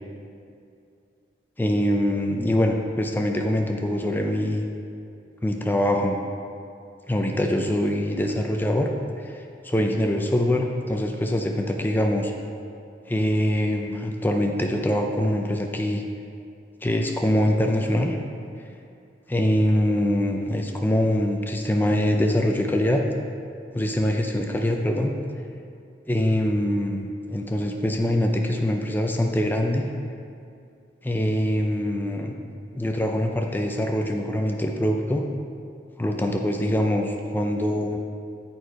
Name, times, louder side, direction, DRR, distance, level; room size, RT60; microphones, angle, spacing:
voice 1, 1.6-4.6 5.4-6.2 7.1-8.9 9.2-12.3 13.1-16.0 16.8-18.2 19.3-23.0 23.7-25.1 26.1-29.9 31.0-32.4 32.7-35.2 36.0-38.0, left 1 dB, 10° left, 2 dB, 0.4 m, -24 dB
10.0 x 4.4 x 4.6 m, 2.5 s
head